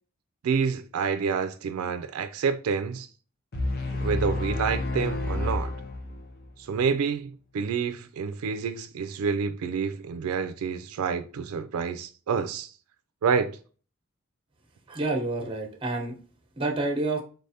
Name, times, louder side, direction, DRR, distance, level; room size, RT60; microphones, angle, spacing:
voice 1, 0.4-3.1 4.0-5.7 6.6-12.7 13.2-13.6, right 6 dB, 80° right, 0.3 m, -28 dB
sound 1, 3.5-6.5, left 2 dB, 45° left, 0.7 m, -30 dB
voice 2, 14.9-16.1 16.6-17.2, right 2 dB, 25° right, 0.8 m, -28 dB
4.1 x 3.3 x 2.7 m
head